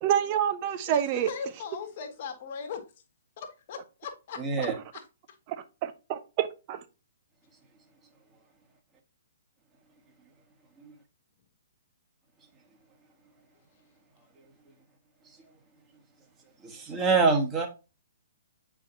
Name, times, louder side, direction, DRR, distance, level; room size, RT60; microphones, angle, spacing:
voice 1, 0.0-1.3 5.8-6.8, right 10 dB, 35° right, 0.8 m, -27 dB
voice 2, 0.9-2.8 3.4-4.7 4.9-5.0, left 6 dB, 45° left, 1.7 m, -39 dB
voice 3, 4.4-4.7 16.6-17.7, right 4 dB, 15° right, 1.7 m, -25 dB
8.2 x 4.8 x 2.7 m
figure-of-eight pair, 125°, 0 cm